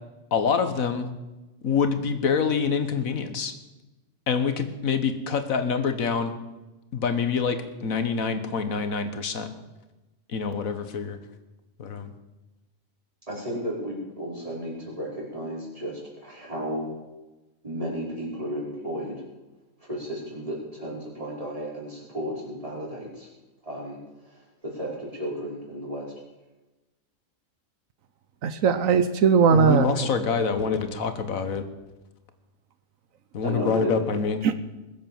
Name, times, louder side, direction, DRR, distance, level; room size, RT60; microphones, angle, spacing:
voice 1, 0.3-1.1 1.6-3.5 4.3-6.3 6.9-9.5 10.3-11.2 11.8-12.1 29.5-31.6 33.3-34.4, left 5 dB, 90° left, 9 dB, 1.7 m, -26 dB
voice 2, 13.3-16.9 17.6-19.2 19.8-23.3 23.6-26.0 33.4-34.1, equal, 25° right, -4 dB, 5.3 m, -33 dB
voice 3, 28.4-30.1 34.4-34.5, right 6 dB, 80° right, 12 dB, 1.2 m, -20 dB
21.0 x 8.4 x 7.2 m, 1.1 s
omnidirectional pair, 1.4 m